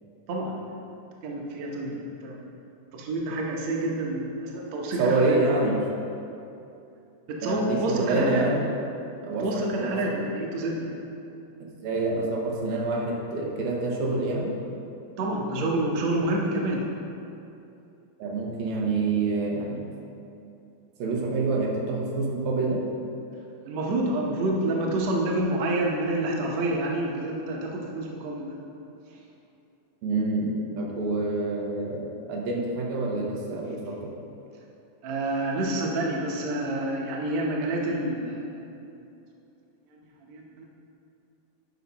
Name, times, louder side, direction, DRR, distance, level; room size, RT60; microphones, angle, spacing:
voice 1, 0.3-0.6 1.2-2.5 2.9-5.6 7.3-8.4 9.4-10.9 15.2-16.9 23.7-28.6 29.1-29.2 35.0-38.8 39.9-40.0 40.3-40.6, right 1 dB, 65° right, -1 dB, 1.8 m, -28 dB
voice 2, 5.0-5.8 7.4-8.7 9.2-10.0 11.8-14.5 18.2-19.9 21.0-22.8 30.0-34.1, right 2 dB, 80° right, -2 dB, 2.8 m, -27 dB
10.5 x 5.9 x 4.1 m, 2.7 s
omnidirectional pair, 4.1 m